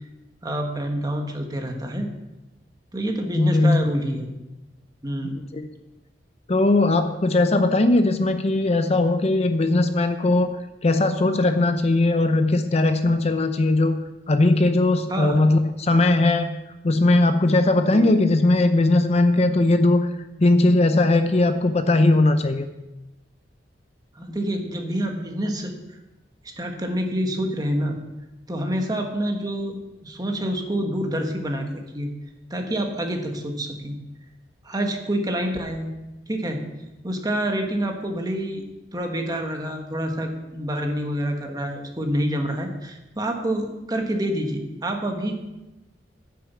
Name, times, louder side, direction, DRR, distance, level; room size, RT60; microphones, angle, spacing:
voice 1, 0.4-2.1 2.9-4.3 5.0-5.4 15.1-15.4 17.9-18.0 24.1-25.8 26.6-28.0 28.5-31.7 31.9-32.1 32.5-33.9 34.6-35.9 36.3-36.7 37.0-38.7 38.9-45.5, equal, 20° right, 3 dB, 1.4 m, -27 dB
voice 2, 3.3-3.8 5.5-5.7 6.5-10.5 10.8-14.0 14.3-16.5 16.8-20.1 20.4-22.7, left 2 dB, 35° left, 9 dB, 0.6 m, -19 dB
9.8 x 6.9 x 7.3 m, 1.0 s
head